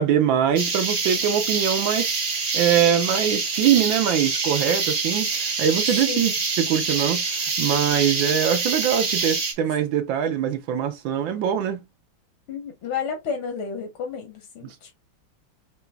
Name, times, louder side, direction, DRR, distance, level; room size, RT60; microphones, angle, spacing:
voice 1, 0.0-2.1 2.5-6.3 6.6-11.8 14.6-14.7, right 9 dB, 75° right, 1.4 m, -23 dB
sound 1, 0.6-9.5, right 4 dB, 50° right, 0.6 m, -26 dB
voice 2, 12.5-14.9, left 6 dB, 80° left, 2.1 m, -31 dB
5.4 x 2.9 x 2.3 m
omnidirectional pair, 2.2 m